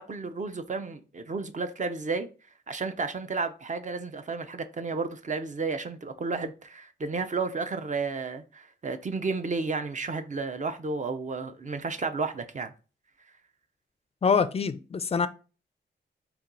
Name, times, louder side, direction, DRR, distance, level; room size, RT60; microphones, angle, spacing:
voice 1, 0.0-2.3 2.7-12.7, right 4 dB, 40° right, 0.5 m, -32 dB
voice 2, 14.2-15.3, left 5 dB, 30° left, 0.4 m, -25 dB
4.2 x 2.3 x 3.8 m
wide cardioid pair, 80°, 20 cm